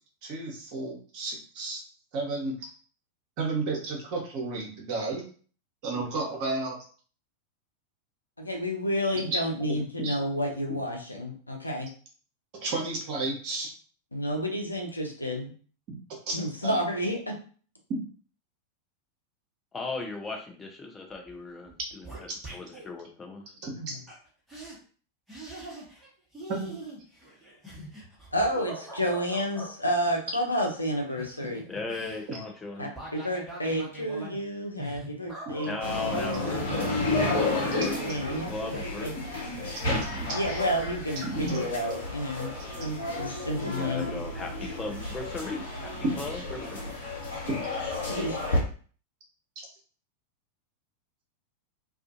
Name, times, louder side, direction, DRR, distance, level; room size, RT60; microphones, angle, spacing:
voice 1, 0.2-1.8 2.1-2.5 3.4-5.2 5.8-6.8 9.7-10.1 12.6-13.7 15.9-16.0 16.3-16.8 23.6-24.0 26.5-26.7 32.3-32.4 39.9-40.4 41.2-41.6 49.6-49.7, right 3 dB, 45° right, 0 dB, 0.9 m, -32 dB
voice 2, 8.4-11.9 14.1-15.5 16.3-17.3 23.8-23.9 28.3-31.6 32.8-38.7 39.0-39.1 40.3-42.5 42.8-44.2 48.1-48.4, equal, 85° left, 1 dB, 0.6 m, -30 dB
voice 3, 19.7-23.5 31.7-32.9 35.6-37.0 37.5-38.0 38.5-39.3 43.6-46.8, left 3 dB, 15° left, 2 dB, 0.6 m, -37 dB
sound 1, 21.2-21.4 21.7-22.9 24.1-24.2 24.5-24.8 25.3-26.1 26.3-29.7 30.8-38.4 38.7-38.9, right 2 dB, ahead, 1.1 m, -42 dB
sound 2, 35.8-48.6, left 2 dB, 60° left, 0.9 m, -32 dB
2.4 x 2.4 x 2.6 m, 0.42 s
figure-of-eight pair, 90°, 0 cm